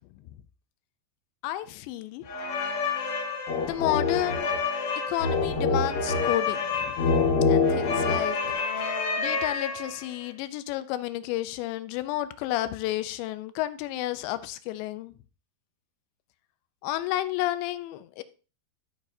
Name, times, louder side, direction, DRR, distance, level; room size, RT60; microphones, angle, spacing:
voice 1, 1.4-2.3 3.6-4.5 5.1-7.0 7.5-8.4 9.2-15.1 16.8-18.2, left 14 dB, 90° left, 2.9 m, -31 dB
sound 1, 2.3-10.1, left 4 dB, 70° left, 1.3 m, -26 dB
13.5 x 6.2 x 2.7 m
omnidirectional pair, 5.0 m